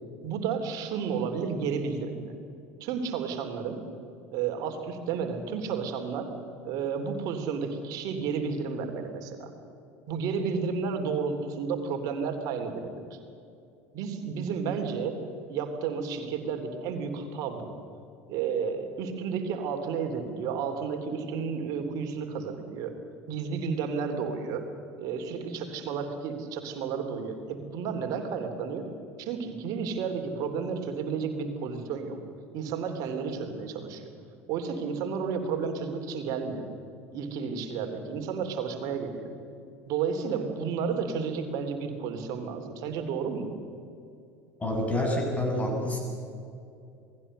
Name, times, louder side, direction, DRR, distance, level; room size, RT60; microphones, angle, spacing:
voice 1, 0.2-2.3 2.8-3.8 4.3-6.3 6.6-9.5 10.1-13.2 13.9-15.2 15.5-17.7 18.3-22.9 23.3-24.6 25.0-28.9 29.2-32.2 32.5-34.1 34.5-36.6 37.1-39.3 39.9-43.5, right 6 dB, 50° right, 5 dB, 3.4 m, -32 dB
voice 2, 44.6-46.0, left 1 dB, 15° left, 1 dB, 7.5 m, -27 dB
28.0 x 20.0 x 6.7 m, 2.6 s
figure-of-eight pair, 70°, 8 cm